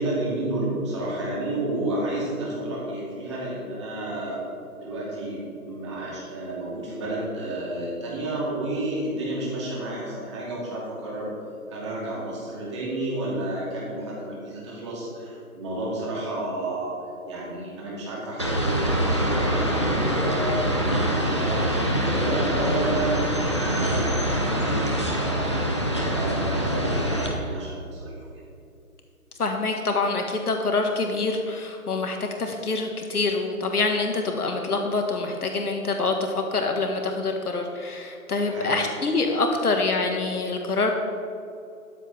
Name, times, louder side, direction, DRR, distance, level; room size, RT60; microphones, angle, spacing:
voice 1, 0.0-4.4 4.8-11.3 11.7-17.0 17.3-28.1 38.5-38.7, right 1 dB, 20° right, -6 dB, 2.5 m, -31 dB
sound 1, 18.4-27.3, equal, 20° left, 0.7 m, -24 dB
voice 2, 29.4-40.9, left 3 dB, 75° left, 3 dB, 1.5 m, -26 dB
13.0 x 11.0 x 3.5 m, 2.6 s
hypercardioid pair, 170°, 46 cm